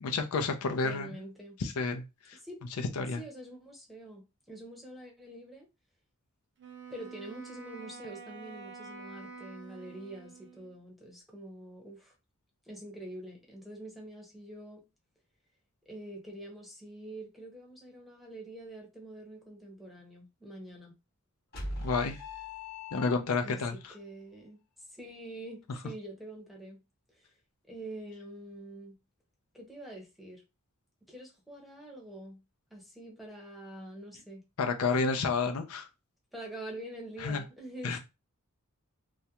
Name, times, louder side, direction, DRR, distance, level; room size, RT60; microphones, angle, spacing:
voice 1, 0.0-1.1 1.6-2.4 3.0-3.2 21.8-22.2 22.9-23.9 34.6-35.9 37.2-37.4 37.8-38.0, left 4 dB, 75° left, 0.4 m, -30 dB
voice 2, 0.8-1.6 2.3-2.6 3.2-5.7 6.9-12.1 12.7-14.8 15.9-20.9 23.3-24.6 24.9-26.8 27.1-27.3 27.7-29.0 29.5-30.4 31.1-32.4 32.7-34.4 36.3-38.0, right 1 dB, ahead, 0.7 m, -45 dB
Wind instrument woodwind instrument, 6.6-10.7, right 4 dB, 55° right, 0.5 m, -47 dB
sound 1, 21.5-23.6, left 2 dB, 45° left, 0.9 m, -40 dB
2.3 x 2.1 x 2.8 m
head